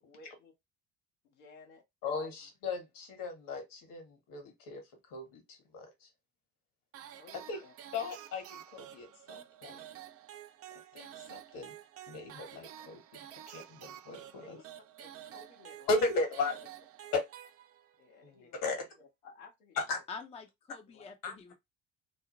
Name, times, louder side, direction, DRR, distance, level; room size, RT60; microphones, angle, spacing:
voice 1, 0.0-0.5 1.2-2.3 7.0-7.7 14.4-14.6 15.0-16.0 18.0-18.7 19.0-19.8 20.9-21.1, left 3 dB, 75° left, 0.9 m, -56 dB
voice 2, 2.0-6.1 7.5-7.6 7.9-9.8 10.9-11.7 12.1-13.0 13.5-14.6 15.9-16.6 17.1-17.2 18.2-18.8 19.8-20.0 21.2-21.3, left 3 dB, 55° left, 1.3 m, -36 dB
sound 1, 6.9-18.1, right 11 dB, 40° right, 0.4 m, -50 dB
voice 3, 20.1-21.5, left 5 dB, 15° left, 0.5 m, -46 dB
2.6 x 2.0 x 2.9 m
hypercardioid pair, 60°, 40 cm